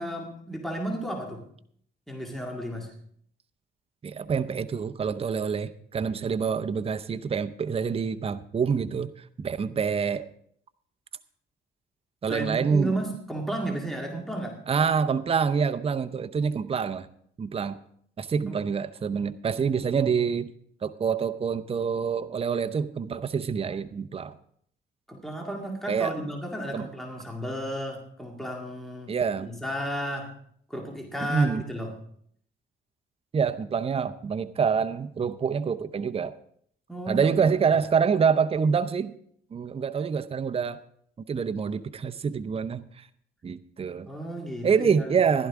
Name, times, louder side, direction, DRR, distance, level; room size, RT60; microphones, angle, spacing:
voice 1, 0.0-1.4 2.1-2.9 12.3-14.6 18.5-18.6 25.1-30.3 30.7-31.9 36.9-37.4 44.1-45.1, right 1 dB, ahead, 0 dB, 2.0 m, -33 dB
voice 2, 4.0-9.1 9.4-10.3 12.2-12.9 14.7-17.1 17.4-17.8 18.2-20.5 20.8-24.3 25.9-26.1 26.7-26.9 29.1-29.5 31.3-31.6 33.3-36.3 37.1-39.1 39.5-40.8 41.3-43.1 43.4-44.1 44.6-45.5, right 6 dB, 30° right, 11 dB, 0.6 m, -26 dB
15.0 x 12.0 x 3.6 m, 0.64 s
cardioid pair, 90°, 20 cm